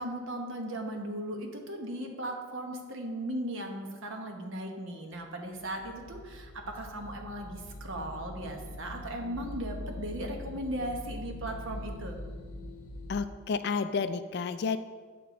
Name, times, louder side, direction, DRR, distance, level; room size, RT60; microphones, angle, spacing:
voice 1, 0.0-12.2, right 1 dB, 60° right, 2 dB, 1.1 m, -37 dB
sound 1, 5.4-13.2, left 1 dB, 85° left, 0.8 m, -43 dB
voice 2, 13.1-14.8, left 5 dB, 50° left, 12 dB, 0.3 m, -31 dB
7.7 x 6.8 x 3.8 m, 1.5 s
head